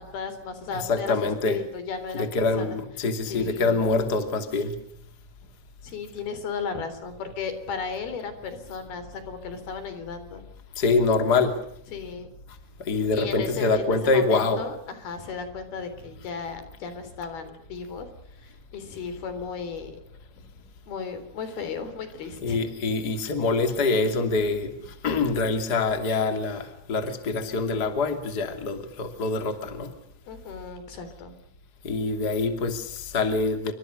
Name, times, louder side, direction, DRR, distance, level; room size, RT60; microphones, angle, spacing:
voice 1, 0.0-2.8 3.3-3.8 5.8-10.4 11.9-12.3 13.1-18.1 18.4-20.0 20.9-22.6 30.3-31.3, left 5 dB, 80° left, 10 dB, 5.5 m, -35 dB
voice 2, 0.9-1.6 2.1-4.7 10.8-11.5 12.8-14.6 22.4-24.7 25.0-29.9 31.8-33.7, left 3 dB, 30° left, 7 dB, 3.0 m, -25 dB
29.0 x 25.0 x 6.6 m, 0.69 s
omnidirectional pair, 4.3 m